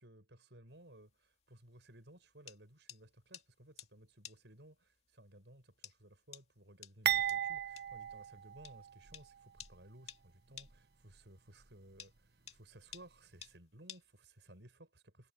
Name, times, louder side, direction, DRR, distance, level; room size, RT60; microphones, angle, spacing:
voice 1, 0.0-15.3, right 1 dB, 90° right, 6.0 m, -59 dB
sound 1, 0.7-14.6, left 8 dB, 35° left, 2.4 m, -56 dB
sound 2, 7.0-9.2 9.6-9.7 10.6-10.7, right 10 dB, 65° right, 1.2 m, -36 dB
head